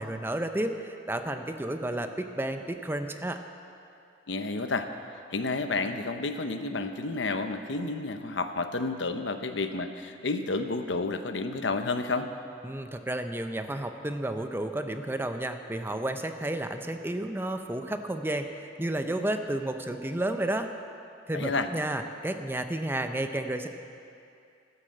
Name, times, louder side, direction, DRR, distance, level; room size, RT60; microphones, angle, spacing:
voice 1, 0.0-3.4 12.6-20.7 21.3-23.7, right 1 dB, 10° right, 7 dB, 0.6 m, -32 dB
voice 2, 4.3-4.9 5.3-12.3 21.3-21.7, left 3 dB, 85° left, 8 dB, 0.8 m, -30 dB
13.0 x 9.8 x 7.7 m, 2.5 s
head